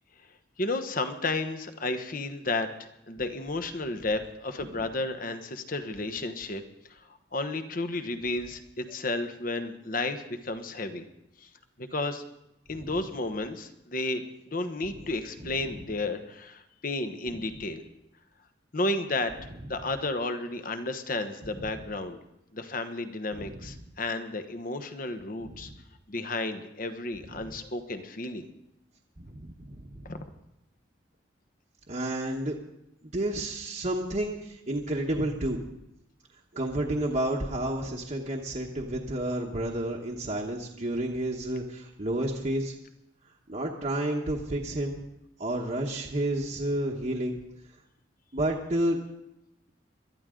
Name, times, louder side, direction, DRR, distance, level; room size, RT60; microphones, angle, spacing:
voice 1, 0.6-6.6 6.9-11.0 11.4-11.5 11.8-12.2 12.7-17.8 18.7-19.3 19.7-22.2 22.5-25.7 26.1-28.5 30.0-30.2, left 2 dB, 45° left, 8 dB, 1.1 m, -32 dB
voice 2, 29.2-30.1 31.9-32.5 33.1-35.6 36.5-42.7 43.5-45.0 45.4-47.4 48.3-49.0, right 1 dB, 40° right, -1 dB, 1.2 m, -30 dB
21.5 x 12.5 x 3.8 m, 0.85 s
head